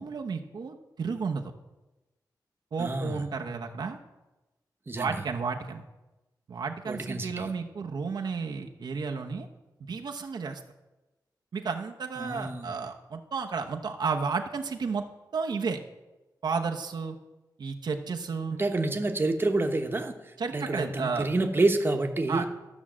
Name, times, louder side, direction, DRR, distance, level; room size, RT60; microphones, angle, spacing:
voice 1, 0.0-1.5 2.7-4.0 5.0-5.8 6.5-9.5 9.8-10.6 11.5-15.0 15.3-15.8 16.4-17.2 17.6-18.6 20.4-21.3 22.3-22.5, right 5 dB, 75° right, 2 dB, 0.9 m, -32 dB
voice 2, 2.8-3.2 4.9-5.2 6.9-7.5 12.2-12.7 18.5-22.5, right 2 dB, 30° right, 5 dB, 1.1 m, -28 dB
13.0 x 6.2 x 7.4 m, 1.1 s
wide cardioid pair, 115°, 7 cm